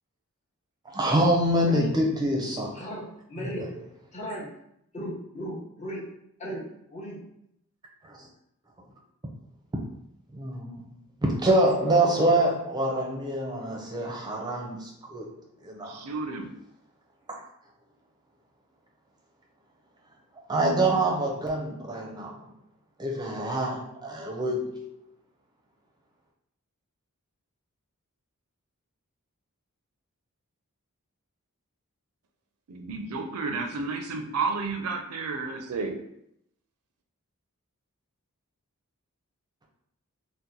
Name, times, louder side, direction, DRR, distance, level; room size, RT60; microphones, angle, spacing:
voice 1, 0.9-2.8 3.4-3.8 8.1-8.3 10.3-10.9 11.2-15.3 15.6-16.0 20.5-22.5 23.0-24.9, right 1 dB, 20° right, 0 dB, 0.5 m, -26 dB
voice 2, 2.7-3.7 4.1-4.5 4.9-6.0 6.4-6.6 6.9-7.2, equal, 30° left, -4 dB, 0.7 m, -36 dB
voice 3, 15.8-16.5 32.7-36.0, right 4 dB, 85° right, 4 dB, 0.5 m, -31 dB
2.8 x 2.1 x 3.7 m, 0.76 s
head